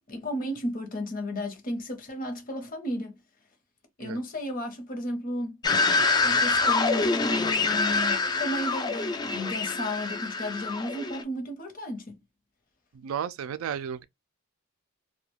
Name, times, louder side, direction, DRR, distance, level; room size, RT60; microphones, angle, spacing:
voice 1, 0.1-3.2 4.0-5.6 6.2-12.1, left 1 dB, 40° left, 0.8 m, -33 dB
sound 1, 5.6-11.2, left 3 dB, 20° left, 0.3 m, -26 dB
voice 2, 13.0-14.0, right 8 dB, 80° right, 0.3 m, -33 dB
2.3 x 2.2 x 3.0 m
head